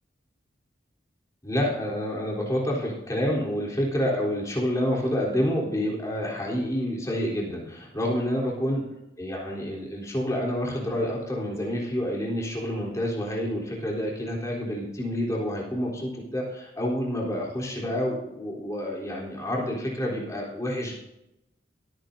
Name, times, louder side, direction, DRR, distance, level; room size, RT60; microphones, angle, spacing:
voice 1, 1.4-8.8 9.2-20.9, equal, 20° left, -3 dB, 3.7 m, -28 dB
22.5 x 9.2 x 2.8 m, 0.88 s
head